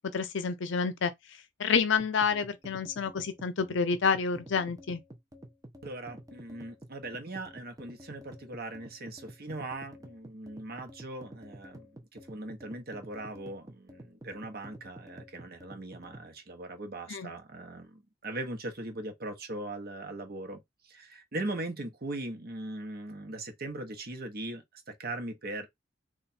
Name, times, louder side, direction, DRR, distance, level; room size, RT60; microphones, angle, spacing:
voice 1, 0.1-1.1 1.6-5.0 17.1-17.3, left 5 dB, 65° left, 0.6 m, -28 dB
sound 1, 2.0-16.3, equal, 20° right, 0.8 m, -50 dB
voice 2, 5.8-25.7, right 2 dB, 55° right, 1.0 m, -40 dB
3.2 x 2.4 x 4.2 m
head